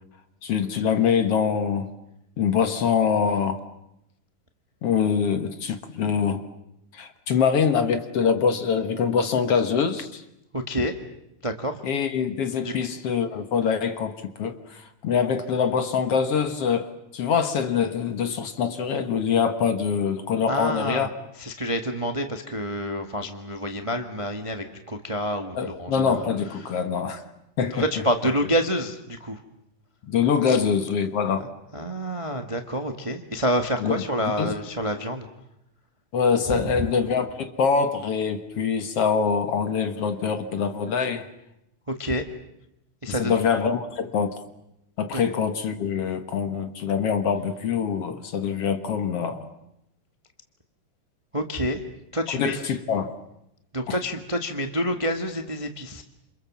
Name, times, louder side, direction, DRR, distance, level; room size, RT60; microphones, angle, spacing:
voice 1, 0.4-1.9 2.4-3.6 4.8-6.4 6.9-10.2 11.8-21.1 25.5-27.2 27.6-27.9 30.1-31.4 33.8-34.0 34.4-34.5 36.1-41.3 43.1-44.4 45.0-49.5 52.3-53.1 53.9-54.0, left 6 dB, 55° left, 8 dB, 2.0 m, -24 dB
voice 2, 10.5-10.9 11.4-11.8 12.6-12.7 20.5-21.1 21.4-26.3 26.6-26.8 27.7-29.4 30.5-30.6 31.7-35.3 36.5-36.9 41.9-42.2 43.0-43.4 45.1-45.2 51.3-51.8 52.1-52.6 53.7-56.0, equal, 30° right, 6 dB, 0.5 m, -28 dB
27.5 x 27.5 x 7.4 m, 0.83 s
omnidirectional pair, 3.8 m